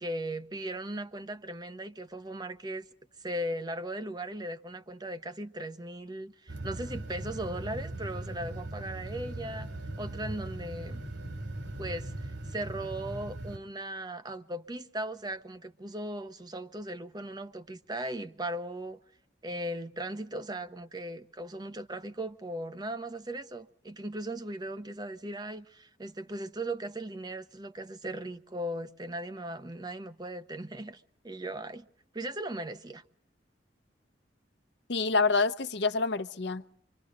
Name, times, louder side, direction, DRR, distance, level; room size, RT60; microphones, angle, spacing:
voice 1, 0.0-2.8 3.2-9.7 10.0-11.0 11.8-19.0 19.4-31.9 32.1-33.0, right 1 dB, 25° right, 0.9 m, -38 dB
sound 1, 6.5-13.6, right 1 dB, 90° right, 2.7 m, -39 dB
voice 2, 34.9-36.7, left 4 dB, 70° left, 0.8 m, -27 dB
27.5 x 24.5 x 3.9 m
head